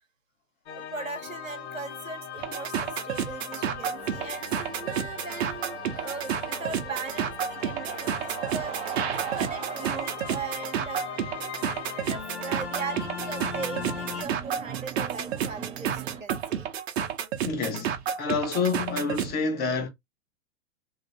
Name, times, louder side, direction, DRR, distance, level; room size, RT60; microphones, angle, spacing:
sound 1, 0.7-14.3, left 6 dB, 60° left, 0.8 m, -39 dB
voice 1, 0.7-8.8 9.1-11.1 12.0-16.7, right 5 dB, 90° right, 0.9 m, -39 dB
sound 2, 2.4-19.3, right 9 dB, 55° right, 0.7 m, -31 dB
sound 3, 4.0-16.2, right 8 dB, 15° right, 0.6 m, -41 dB
voice 2, 17.4-17.9 18.2-19.9, left 4 dB, 25° left, 1.0 m, -27 dB
3.0 x 2.8 x 2.6 m
figure-of-eight pair, 95°, 38 cm